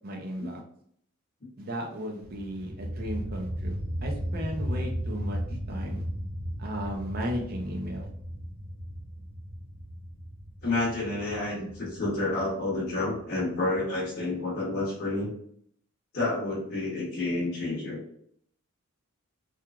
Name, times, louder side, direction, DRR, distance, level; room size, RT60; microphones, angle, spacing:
voice 1, 0.0-0.6 1.6-5.4 5.7-6.0 6.6-8.1, equal, 45° right, 1 dB, 0.5 m, -35 dB
sound 1, 2.2-13.8, equal, 10° right, 1.1 m, -36 dB
voice 2, 10.6-15.3 16.1-18.0, left 2 dB, 50° left, -8 dB, 0.8 m, -29 dB
2.9 x 2.4 x 2.3 m, 0.66 s
head